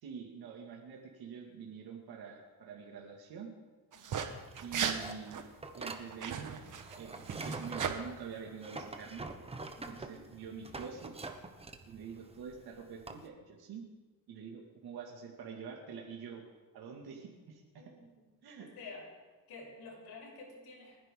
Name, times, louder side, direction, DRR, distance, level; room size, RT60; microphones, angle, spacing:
voice 1, 0.0-3.5 4.6-5.4 5.7-9.3 9.8-11.1 11.9-13.8 14.3-16.4 16.7-17.9 18.4-18.7, right 6 dB, 75° right, 0 dB, 2.3 m, -46 dB
voice 2, 3.9-4.4 9.7-10.2 17.8-18.2 18.6-19.1 19.5-21.0, left 3 dB, 90° left, -3 dB, 6.4 m, -50 dB
sound 1, 3.9-4.3 4.5-5.0 5.3-5.4 6.1-7.9, right 8 dB, 55° right, 1.4 m, -36 dB
sound 2, 4.1-13.3, right 3 dB, 15° right, 1.0 m, -45 dB
30.0 x 10.5 x 3.8 m, 1.3 s
cardioid pair, 145°, 37 cm